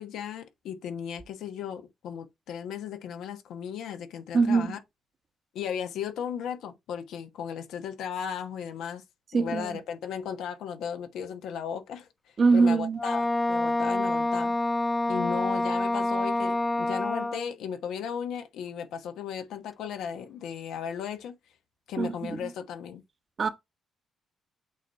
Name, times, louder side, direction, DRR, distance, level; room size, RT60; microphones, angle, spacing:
voice 1, 0.0-4.8 5.5-9.0 9.3-12.1 12.5-14.5 15.1-21.4 21.9-23.0, left 8 dB, 80° left, 1.2 m, -36 dB
voice 2, 4.3-4.8 9.3-9.8 12.4-13.0 22.0-22.5 23.4-23.5, right 4 dB, 45° right, 1.0 m, -23 dB
Wind instrument woodwind instrument, 13.0-17.5, left 2 dB, 15° left, 0.4 m, -27 dB
8.2 x 2.8 x 4.6 m
cardioid pair, 90°, 0 cm